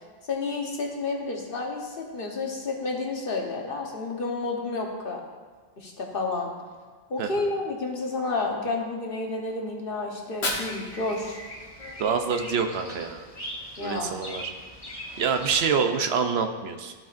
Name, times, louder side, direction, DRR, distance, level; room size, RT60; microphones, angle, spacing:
voice 1, 0.3-5.2 5.8-6.5 7.1-11.4 13.8-14.1, left 3 dB, 60° left, 0 dB, 1.2 m, -30 dB
Fire, 10.1-12.1, left 2 dB, 75° left, 1.7 m, -35 dB
Bird vocalization bird call bird song, 10.5-15.6, equal, 35° left, 1.7 m, -41 dB
voice 2, 12.0-13.2 13.8-14.5 15.2-16.9, right 6 dB, 75° right, 6 dB, 0.9 m, -26 dB
14.5 x 4.9 x 2.5 m, 1.5 s
omnidirectional pair, 1.1 m